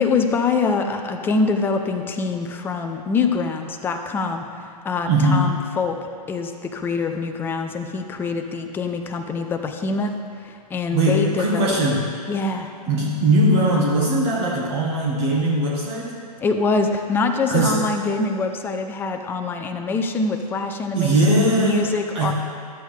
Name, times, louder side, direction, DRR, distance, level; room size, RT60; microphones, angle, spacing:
voice 1, 0.0-6.0 6.3-11.8 12.3-12.7 16.4-22.3, left 4 dB, 10° left, 5 dB, 0.5 m, -24 dB
voice 2, 5.1-5.6 10.9-12.1 12.9-16.2 17.5-17.8 20.9-22.3, right 1 dB, 40° right, -4 dB, 1.5 m, -20 dB
12.5 x 8.0 x 3.3 m, 2.2 s
hypercardioid pair, 130°, 21 cm